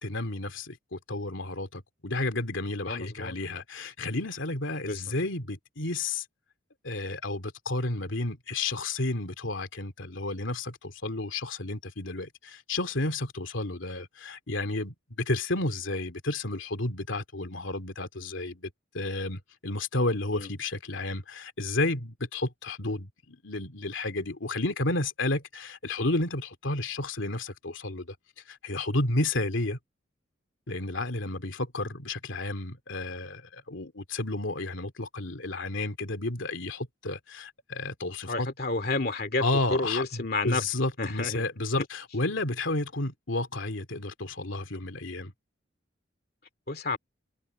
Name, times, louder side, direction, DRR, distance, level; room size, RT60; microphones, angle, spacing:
voice 1, 0.0-6.2 6.8-28.2 28.5-29.8 30.7-38.5 39.4-45.3, left 2 dB, 85° left, 2.6 m, -32 dB
voice 2, 2.9-3.3 4.9-5.0 20.3-20.5 38.3-39.4 39.7-40.7 41.0-41.4 46.7-47.0, left 2 dB, 55° left, 2.4 m, -30 dB
head